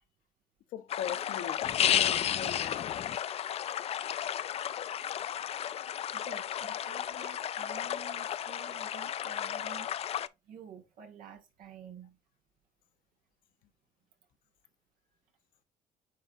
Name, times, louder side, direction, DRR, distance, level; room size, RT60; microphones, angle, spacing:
voice 1, 0.7-3.0, left 10 dB, 85° left, 0.9 m, -40 dB
sound 1, 0.9-10.3, left 10 dB, 45° left, 0.4 m, -33 dB
voice 2, 6.1-10.1 10.4-12.2, right 7 dB, 80° right, 1.9 m, -50 dB
9.5 x 4.1 x 2.6 m
cardioid pair, 125°, 14 cm